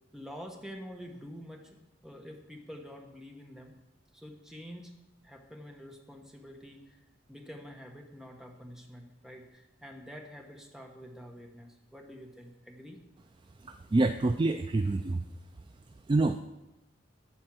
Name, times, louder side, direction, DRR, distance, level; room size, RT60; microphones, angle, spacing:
voice 1, 0.1-1.8 2.0-3.8 4.1-5.0 5.2-7.0 7.3-13.0, equal, 5° right, 2 dB, 1.1 m, -47 dB
voice 2, 13.6-15.3 16.1-16.4, right 2 dB, 25° right, 8 dB, 0.3 m, -27 dB
12.5 x 4.5 x 7.5 m, 0.97 s
head